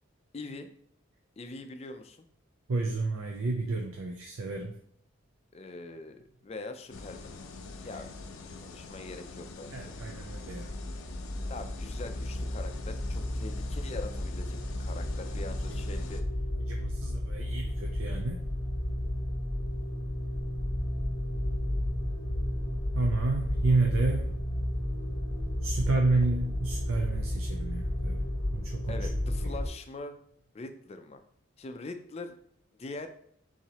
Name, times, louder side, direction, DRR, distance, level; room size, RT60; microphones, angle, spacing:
voice 1, 0.3-0.7 1.4-2.3 5.5-7.3 7.8-8.1 8.6-9.9 11.5-16.2 25.6-26.3 28.9-30.2 30.5-31.2 31.6-32.3 32.8-33.1, left 3 dB, 30° left, 8 dB, 0.4 m, -43 dB
voice 2, 2.7-4.7 9.7-10.7 16.7-18.4 22.9-24.3 25.6-28.2 28.5-29.1, right 3 dB, 85° right, 2 dB, 0.5 m, -30 dB
sound 1, 6.9-16.2, left 3 dB, 85° left, 0.5 m, -45 dB
sound 2, 10.2-29.7, left 1 dB, 15° left, 0.9 m, -32 dB
4.6 x 3.9 x 2.9 m, 0.66 s
head